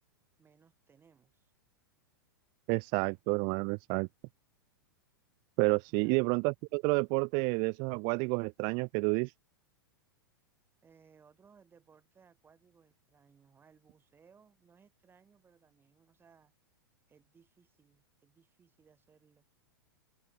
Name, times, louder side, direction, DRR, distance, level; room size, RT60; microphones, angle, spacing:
voice 1, 0.4-1.5 5.9-6.3 10.8-16.5 17.1-19.4, right 6 dB, 20° right, 6.4 m, -64 dB
voice 2, 2.7-4.1 5.6-9.3, right 36 dB, 40° right, 0.3 m, -30 dB
open air
figure-of-eight pair, 100°, 12 cm